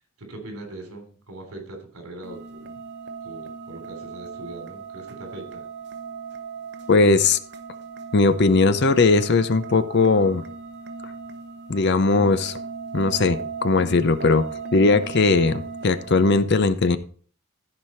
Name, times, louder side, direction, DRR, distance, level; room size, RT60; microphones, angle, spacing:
voice 1, 0.2-2.8 3.2-5.6, right 2 dB, 75° right, 4 dB, 3.2 m, -40 dB
sound 1, 2.2-16.4, right 5 dB, 50° right, 0.8 m, -37 dB
voice 2, 6.9-7.4 8.1-10.4 11.7-12.5 12.9-17.0, left 3 dB, 50° left, 13 dB, 0.6 m, -19 dB
14.5 x 4.9 x 4.3 m, 0.44 s
head